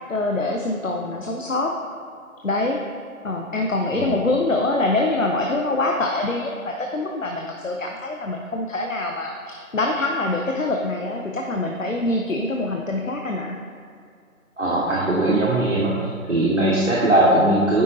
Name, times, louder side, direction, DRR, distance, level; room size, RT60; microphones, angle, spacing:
voice 1, 0.1-1.7 2.4-2.8 3.2-13.6, left 2 dB, 65° left, 1 dB, 0.7 m, -24 dB
voice 2, 14.6-15.9 16.3-17.8, right 1 dB, 55° right, -6 dB, 1.1 m, -19 dB
9.3 x 4.6 x 2.7 m, 2.3 s
figure-of-eight pair, 175°, 43 cm